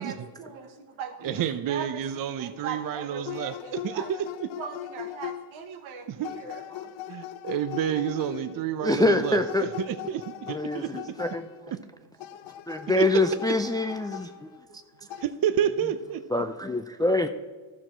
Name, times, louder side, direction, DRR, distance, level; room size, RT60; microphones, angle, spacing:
voice 1, 0.0-4.1 4.6-6.6 11.1-11.7 17.0-17.3, right 6 dB, 75° right, 7 dB, 1.3 m, -40 dB
voice 2, 1.2-4.2 6.1-6.3 7.1-11.0 11.7-11.8 13.0-13.1 15.2-16.2, right 9 dB, 45° right, 11 dB, 0.6 m, -30 dB
sound 1, 3.3-5.7 6.2-8.6 9.2-11.7 12.2-14.7 15.1-15.3, left 12 dB, 70° left, 0.7 m, -40 dB
voice 3, 8.8-9.7 10.5-10.8 11.2-11.5 12.7-14.3 16.3-17.3, left 2 dB, 10° left, 8 dB, 0.3 m, -25 dB
12.5 x 6.3 x 4.4 m, 1.4 s
cardioid pair, 85°, 49 cm